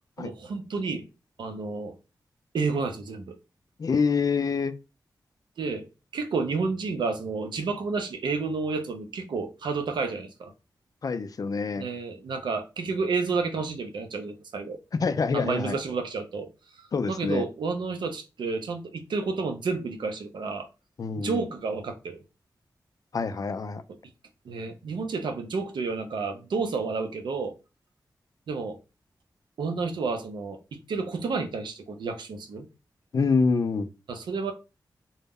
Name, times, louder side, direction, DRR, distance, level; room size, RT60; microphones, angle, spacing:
voice 1, 0.2-1.0 1.4-1.9 2.5-3.4 5.6-5.9 6.1-10.5 11.8-14.8 15.3-16.5 16.8-20.7 21.2-22.2 24.4-27.5 28.5-28.8 29.6-32.7 34.1-34.5, right 4 dB, 90° right, 0.4 m, -30 dB
voice 2, 3.8-4.7 11.0-11.9 15.0-15.8 16.9-17.5 21.0-21.4 23.1-23.8 33.1-33.9, left 5 dB, 55° left, 0.3 m, -26 dB
2.0 x 2.0 x 3.5 m
cardioid pair, 60°, 8 cm